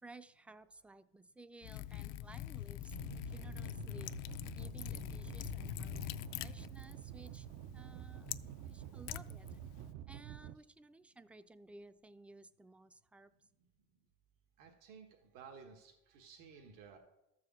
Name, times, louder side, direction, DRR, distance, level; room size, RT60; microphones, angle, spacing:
voice 1, 0.0-7.5 7.7-8.3 8.6-9.6 10.1-13.3, right 2 dB, 5° right, 12 dB, 0.3 m, -57 dB
Liquid, 1.6-9.9, left 14 dB, 80° left, 0.5 m, -45 dB
sound 1, 2.9-10.5, right 12 dB, 65° right, 0.5 m, -49 dB
voice 2, 14.6-15.1 15.3-17.0, right 6 dB, 85° right, 1 dB, 1.5 m, -55 dB
13.0 x 4.8 x 7.3 m, 0.92 s
cardioid pair, 130°, 30 cm